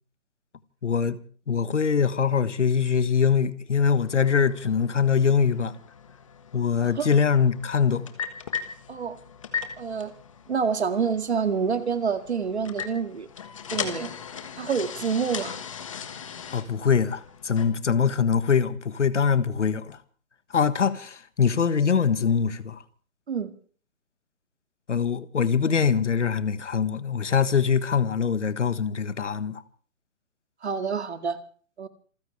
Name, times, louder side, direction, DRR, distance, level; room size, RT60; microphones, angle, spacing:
voice 1, 0.8-1.2 1.5-5.7 6.5-8.1 16.5-20.0 20.5-22.8 24.9-29.6, left 6 dB, 60° left, 1.5 m, -23 dB
sound 1, 4.0-17.7, left 7 dB, 25° left, 1.5 m, -38 dB
voice 2, 9.8-10.1 10.5-13.3 13.7-14.1 14.6-15.6 23.3-23.5 30.6-31.4 31.8-31.9, right 6 dB, 55° right, 2.0 m, -27 dB
27.5 x 15.0 x 3.3 m
hypercardioid pair, 175°, 40 cm